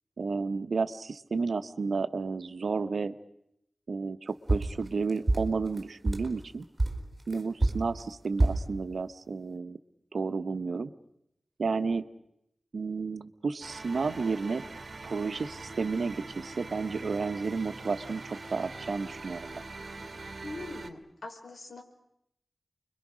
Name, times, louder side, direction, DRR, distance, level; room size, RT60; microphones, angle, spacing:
voice 1, 0.2-3.1 3.9-6.6 7.3-9.8 10.1-10.9 11.6-12.0 12.7-14.6 15.0-19.6, right 4 dB, 90° right, 11 dB, 1.2 m, -32 dB
sound 1, 4.5-6.4 6.8-8.7, right 2 dB, 30° right, 4.5 m, -27 dB
sound 2, 13.6-20.9, right 3 dB, 60° right, 1.9 m, -43 dB
voice 2, 20.4-21.8, left 2 dB, 65° left, 3 dB, 5.2 m, -42 dB
29.5 x 23.0 x 6.3 m, 0.78 s
wide cardioid pair, 90°, 0 cm